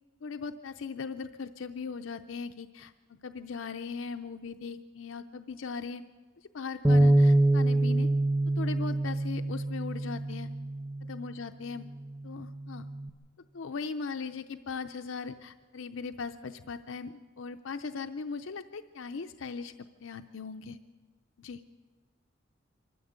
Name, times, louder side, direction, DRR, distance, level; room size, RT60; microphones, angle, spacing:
voice 1, 0.2-2.9 3.2-6.0 6.4-8.1 8.5-10.5 11.1-11.9 12.2-12.9 13.5-19.7 20.0-20.8 21.4-21.6, left 5 dB, 75° left, 8 dB, 0.6 m, -39 dB
Bass guitar, 6.8-11.3 11.9-13.1, right 1 dB, 5° right, 0.9 m, -26 dB
24.5 x 13.5 x 8.0 m, 1.4 s
head